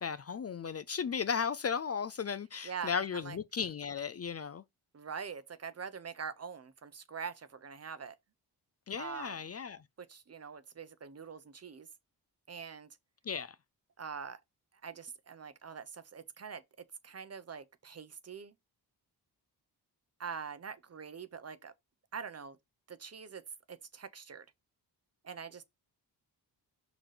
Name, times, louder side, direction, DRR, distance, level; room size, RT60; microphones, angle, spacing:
voice 1, 0.0-4.6 8.9-9.8 13.2-13.6, left 6 dB, 40° left, 0.5 m, -35 dB
voice 2, 2.6-3.4 4.9-8.1 9.0-9.4 10.1-11.9 12.5-12.9 14.0-14.4 14.8-16.6 17.0-18.5 20.2-21.7 22.1-22.6 22.9-23.4 23.7-24.4 25.2-25.6, right 6 dB, 40° right, 0.9 m, -44 dB
5.9 x 4.0 x 4.9 m
wide cardioid pair, 110°, 41 cm